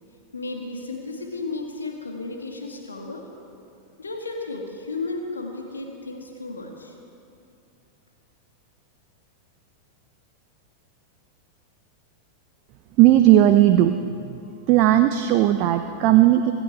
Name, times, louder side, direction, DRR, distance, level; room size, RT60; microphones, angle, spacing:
voice 1, 0.3-3.2 4.0-6.9, left 3 dB, 75° left, 1 dB, 2.1 m, -33 dB
voice 2, 13.0-13.9 14.3-14.4 14.7-16.5, right 13 dB, 40° right, 8 dB, 0.6 m, -16 dB
25.5 x 11.5 x 4.7 m, 2.7 s
figure-of-eight pair, 90°, 0 cm